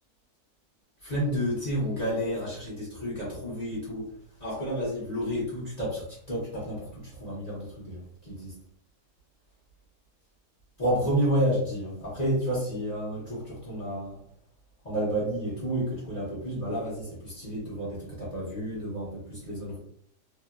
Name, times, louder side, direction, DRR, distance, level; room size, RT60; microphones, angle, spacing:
voice 1, 1.0-4.1 4.4-8.6 10.8-14.2 14.8-19.8, equal, 30° left, -7 dB, 0.8 m, -30 dB
3.0 x 2.3 x 2.3 m, 0.62 s
omnidirectional pair, 1.8 m